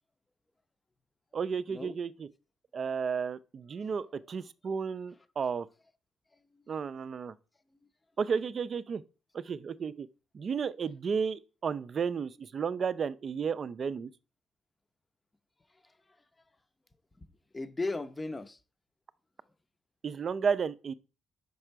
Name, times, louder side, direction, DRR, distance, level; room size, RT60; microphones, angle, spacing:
voice 1, 1.3-2.3 2.7-5.7 6.7-7.3 8.2-9.0 9.3-10.1 10.3-14.1 20.0-20.9, right 6 dB, 50° right, 0.4 m, -33 dB
voice 2, 6.3-6.6 15.7-16.2 17.2-17.3 17.5-18.6, left 3 dB, 20° left, 0.6 m, -38 dB
5.4 x 4.9 x 4.5 m
cardioid pair, 90°, 0 cm